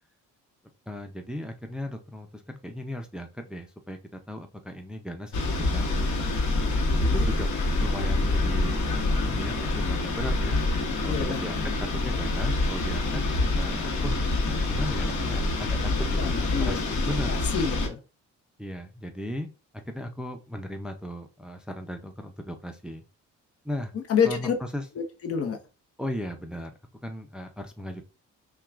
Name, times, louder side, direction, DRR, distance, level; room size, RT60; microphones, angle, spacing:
voice 1, 0.9-4.0 4.3-6.3 7.1-7.5 7.8-10.6 11.0-13.2 13.6-14.2 14.5-17.3 18.6-19.5 19.9-23.0 23.6-23.9 24.3-24.8 26.0-26.7 27.0-28.0, equal, 5° right, 5 dB, 0.5 m, -36 dB
sound 1, 5.3-17.9, left 2 dB, 75° left, 1.1 m, -26 dB
voice 2, 11.0-11.4 16.2-16.8 17.3-18.0 23.9-24.5 25.0-25.6, left 7 dB, 50° left, 5 dB, 0.8 m, -28 dB
5.7 x 2.3 x 2.4 m, 0.31 s
cardioid pair, 90°, 30 cm